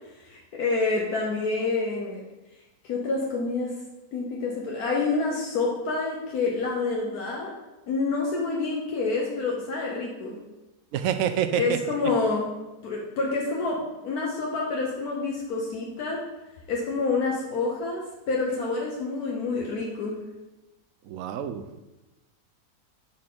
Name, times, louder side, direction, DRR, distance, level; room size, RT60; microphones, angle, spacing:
voice 1, 0.2-2.2 2.8-3.7 4.1-7.5 7.9-10.3 11.5-12.5 12.8-16.2 16.7-18.0 18.3-20.1, left 3 dB, 70° left, -2 dB, 1.5 m, -28 dB
voice 2, 10.9-11.7 21.1-21.8, right 9 dB, 70° right, 9 dB, 0.9 m, -27 dB
9.5 x 4.2 x 3.8 m, 1.0 s
omnidirectional pair, 1.7 m